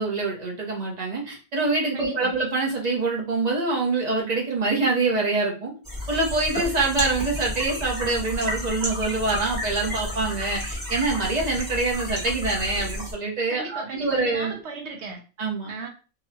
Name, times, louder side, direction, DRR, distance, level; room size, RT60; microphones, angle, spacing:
voice 1, 0.0-5.7 6.1-14.5 15.4-15.7, right 3 dB, 40° right, -1 dB, 0.9 m, -25 dB
voice 2, 1.9-2.3 13.5-15.2 15.7-15.9, right 4 dB, 70° right, 2 dB, 0.9 m, -35 dB
sound 1, 5.8-13.1, left 1 dB, 20° right, 1.2 m, -32 dB
2.9 x 2.3 x 2.6 m, 0.34 s
omnidirectional pair, 1.2 m